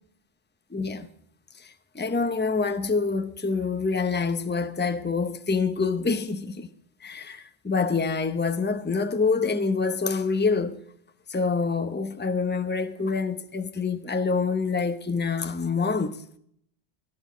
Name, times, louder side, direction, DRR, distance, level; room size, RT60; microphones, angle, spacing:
voice 1, 0.7-1.1 1.6-6.7 7.0-10.8 11.3-16.2, left 4 dB, 10° left, 0.7 m, -26 dB
15.0 x 14.0 x 5.1 m
omnidirectional pair, 1.2 m